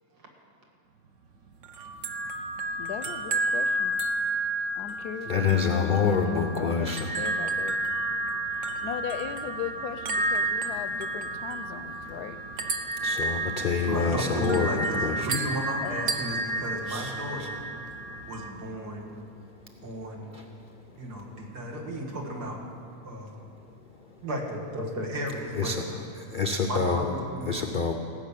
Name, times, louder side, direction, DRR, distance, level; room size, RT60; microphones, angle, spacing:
sound 1, 1.6-18.5, right 2 dB, 55° right, 1.1 m, -31 dB
voice 1, 2.8-4.0 4.8-7.8 8.8-12.4 15.8-16.2, left 9 dB, 80° left, 12 dB, 1.1 m, -38 dB
voice 2, 5.3-7.1 12.9-15.3 16.9-17.5 19.4-19.5 20.0-20.6 20.9-21.0 21.3-21.4 24.0-24.1 25.5-25.8 26.2-27.1 27.4-27.9, left 5 dB, 60° left, 3 dB, 0.5 m, -27 dB
voice 3, 13.8-17.6 18.3-19.1 19.8-20.4 21.0-22.6 23.0-23.4 24.2-25.7 26.7-27.5, right 1 dB, 75° right, -1 dB, 2.4 m, -34 dB
17.0 x 6.1 x 8.3 m, 2.6 s
omnidirectional pair, 1.7 m